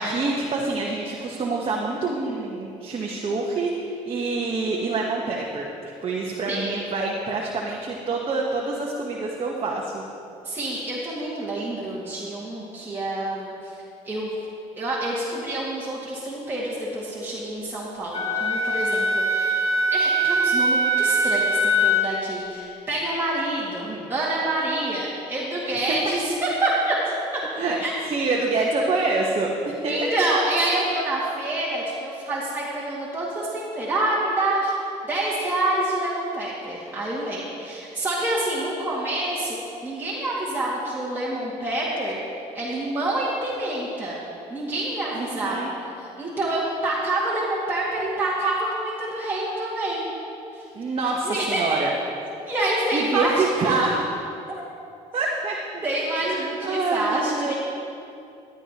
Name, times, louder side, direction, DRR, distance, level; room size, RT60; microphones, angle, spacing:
voice 1, 0.0-5.7 6.0-10.0 23.8-24.1 25.9-26.1 27.5-27.8 28.1-30.1 45.1-45.7 50.7-51.9 52.9-53.9 55.1-55.8 56.2-57.5, right 3 dB, 40° right, -2 dB, 1.2 m, -26 dB
voice 2, 10.4-13.8 14.0-14.3 14.8-19.6 19.9-27.4 27.8-27.9 29.9-34.8 35.0-39.6 39.8-42.2 42.5-44.2 44.5-50.0 50.5-50.7 51.2-51.8 52.5-53.8 55.8-57.5, right 1 dB, 15° right, -8 dB, 2.1 m, -27 dB
Wind instrument woodwind instrument, 18.1-22.2, right 1 dB, 45° left, 1.6 m, -22 dB
13.5 x 11.0 x 3.0 m, 2.6 s
cardioid pair, 90°, 15 cm